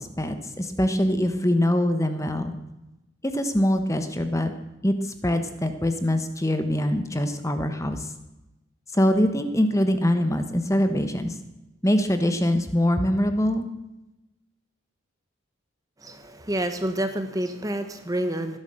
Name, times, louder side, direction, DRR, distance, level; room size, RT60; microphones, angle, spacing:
voice 1, 0.0-2.5 3.2-4.5 4.8-8.1 8.9-11.4 11.8-13.7, left 1 dB, 15° left, 8 dB, 1.1 m, -23 dB
voice 2, 16.0-18.6, right 1 dB, 15° right, 8 dB, 1.0 m, -28 dB
16.0 x 11.0 x 7.7 m, 0.97 s
head